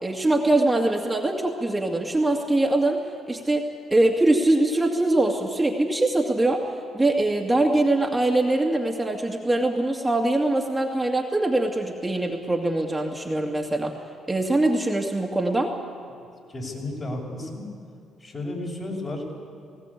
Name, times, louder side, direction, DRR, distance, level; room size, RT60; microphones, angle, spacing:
voice 1, 0.0-3.0 3.3-6.6 6.9-13.9 14.3-15.7, right 2 dB, 15° right, 0 dB, 2.3 m, -23 dB
voice 2, 16.1-17.7 18.2-19.3, left 2 dB, 35° left, -1 dB, 6.4 m, -33 dB
19.0 x 18.0 x 8.5 m, 2.4 s
hypercardioid pair, 50°, 0 cm